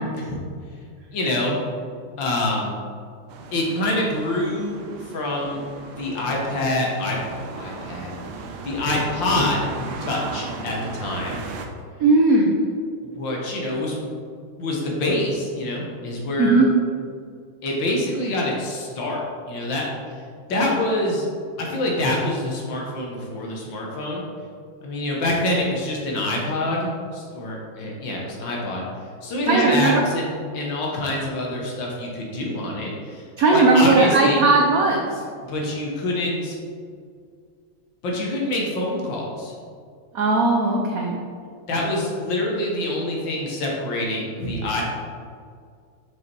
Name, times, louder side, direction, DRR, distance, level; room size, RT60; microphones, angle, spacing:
voice 1, 1.1-1.6 2.2-2.7 3.5-5.6 5.9-7.2 7.6-8.2 8.6-9.7 10.0-11.4 13.0-14.0 14.6-16.7 17.6-19.2 19.5-19.9 20.5-21.3 21.6-24.2 24.8-28.8 29.2-30.3 30.5-33.3 33.5-34.5 35.4-36.6 38.0-39.6 41.7-44.8, left 1 dB, 65° left, -2 dB, 1.9 m, -25 dB
sound 1, 3.3-11.7, right 4 dB, 90° right, 1.6 m, -36 dB
voice 2, 12.0-12.6 16.4-16.7 29.5-30.0 33.4-35.1 40.1-41.2, right 3 dB, 75° right, 0 dB, 0.8 m, -17 dB
5.8 x 5.7 x 4.6 m, 2.1 s
omnidirectional pair, 2.3 m